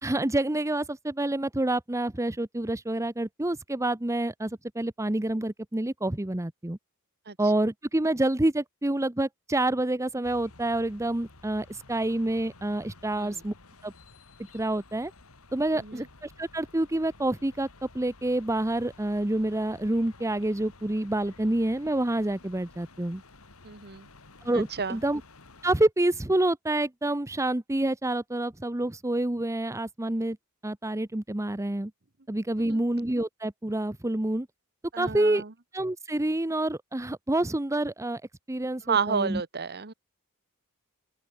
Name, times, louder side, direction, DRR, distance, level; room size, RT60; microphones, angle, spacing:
voice 1, 0.0-6.8 7.4-13.5 13.8-13.9 14.5-15.1 15.5-17.7 17.9-23.2 24.4-25.2 25.6-30.4 30.6-31.9 32.3-34.5 35.0-35.4 35.7-38.2 38.5-39.4, right 1 dB, 15° right, 0.8 m, -28 dB
sound 1, 10.2-25.9, left 3 dB, 70° left, 3.3 m, -53 dB
voice 2, 15.7-16.1 23.6-24.1 24.5-25.0 32.7-32.8 34.9-35.5 38.8-39.9, right 6 dB, 50° right, 1.5 m, -31 dB
open air
head